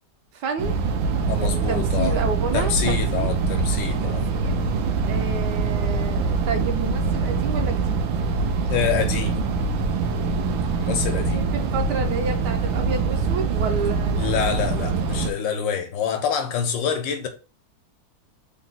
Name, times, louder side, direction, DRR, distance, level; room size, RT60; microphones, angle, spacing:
voice 1, 0.3-0.8 1.4-3.3 4.0-4.6 5.0-8.1 11.2-14.6, right 4 dB, 75° right, 1.1 m, -30 dB
sound 1, 0.6-15.3, right 4 dB, 90° right, 1.4 m, -24 dB
voice 2, 1.3-2.2 2.5-4.3 8.7-9.4 10.8-11.4 14.2-17.3, left 7 dB, 75° left, 1.4 m, -26 dB
3.9 x 2.2 x 3.9 m
omnidirectional pair, 2.0 m